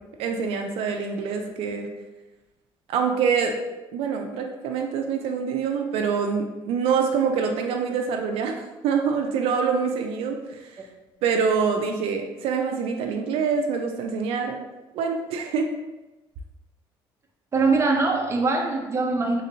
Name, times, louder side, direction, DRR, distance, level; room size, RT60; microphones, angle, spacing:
voice 1, 0.2-1.9 2.9-3.6 3.9-10.6 11.2-14.6 14.9-15.7, right 6 dB, 80° right, 3 dB, 0.4 m, -25 dB
voice 2, 17.5-19.4, right 3 dB, 30° right, 2 dB, 0.5 m, -22 dB
3.3 x 2.8 x 2.7 m, 1.1 s
cardioid pair, 100°, 10 cm